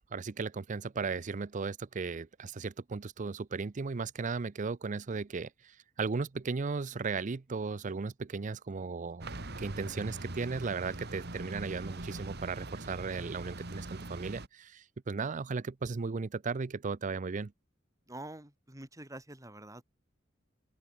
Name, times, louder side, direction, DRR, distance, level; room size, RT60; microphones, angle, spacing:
voice 1, 0.0-5.5 6.0-9.3 9.6-17.5, right 4 dB, 40° right, 0.5 m, -36 dB
sound 1, 9.2-14.5, right 2 dB, 55° right, 2.3 m, -42 dB
voice 2, 18.1-19.8, right 1 dB, 15° right, 3.9 m, -46 dB
open air
head